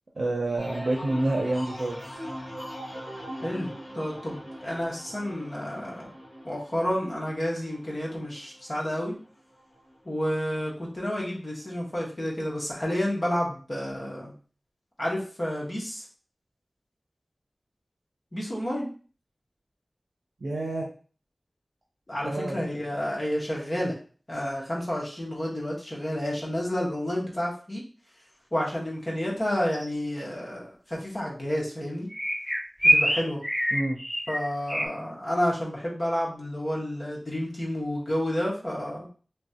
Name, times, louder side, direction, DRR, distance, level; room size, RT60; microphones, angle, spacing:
voice 1, 0.2-2.0 20.4-20.9 22.2-22.6 33.7-34.0, right 2 dB, 85° right, -1 dB, 0.6 m, -28 dB
sound 1, 0.6-10.1 10.5-11.0, equal, 70° left, 1.7 m, -41 dB
voice 2, 3.4-6.1 6.4-9.1 10.0-14.3 15.0-16.0 18.3-18.9 22.1-23.9 24.3-27.8 28.5-32.1 32.8-33.4 34.3-39.1, equal, 40° left, -4 dB, 1.4 m, -30 dB
sound 2, 29.5-29.9 32.1-34.9, equal, ahead, 0.4 m, -25 dB
3.2 x 3.1 x 2.8 m, 0.39 s
wide cardioid pair, 60°, 0 cm